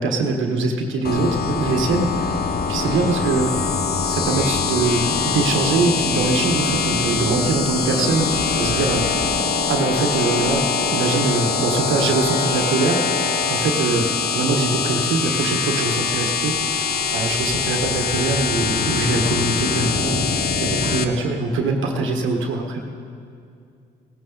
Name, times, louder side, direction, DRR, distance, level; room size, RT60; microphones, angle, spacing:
voice 1, 0.0-3.5 4.0-8.3 8.5-9.2 9.7-10.6 10.9-14.0 14.3-22.9, right 3 dB, 80° right, 2 dB, 1.5 m, -23 dB
sound 1, 1.0-21.0, left 5 dB, 50° left, 1.0 m, -23 dB
17.0 x 14.5 x 4.0 m, 2.4 s
cardioid pair, 90°, 20 cm